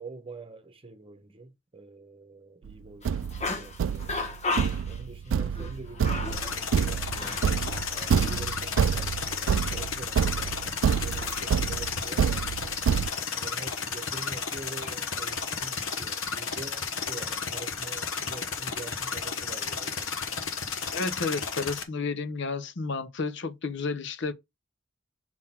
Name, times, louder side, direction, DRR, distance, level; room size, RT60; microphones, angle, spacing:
voice 1, 0.0-4.2 4.9-12.9 13.3-20.1, right 3 dB, 30° right, 1.1 m, -45 dB
Thump thud, 2.7-2.8 3.1-13.1, right 7 dB, 75° right, 0.3 m, -28 dB
sound 1, 3.0-8.5 8.7-8.8 10.3-15.1 15.5-16.0, left 3 dB, 35° left, 1.4 m, -38 dB
sound 2, 6.3-21.8, left 6 dB, 90° left, 1.1 m, -33 dB
voice 2, 20.9-24.3, left 4 dB, 65° left, 0.7 m, -31 dB
6.1 x 3.8 x 4.3 m
head